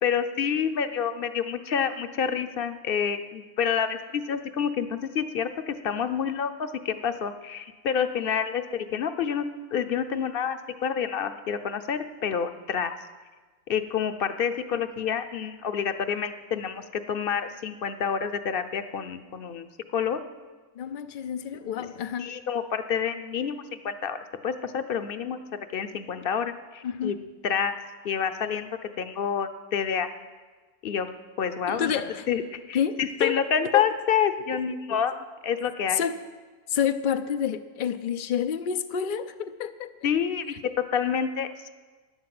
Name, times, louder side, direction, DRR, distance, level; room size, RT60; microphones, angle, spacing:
voice 1, 0.0-12.9 13.7-19.7 19.9-20.2 22.2-25.4 25.7-27.1 27.4-27.7 28.0-28.7 29.0-30.1 30.8-31.1 31.4-31.9 32.3-36.0 40.0-41.7, left 7 dB, 50° left, 10 dB, 0.7 m, -28 dB
voice 2, 20.8-22.4 26.8-27.2 31.7-32.3 32.7-33.9 34.5-34.6 35.9-36.2 36.7-39.9, left 8 dB, 75° left, 9 dB, 0.4 m, -28 dB
12.0 x 10.5 x 7.7 m, 1.3 s
omnidirectional pair, 1.5 m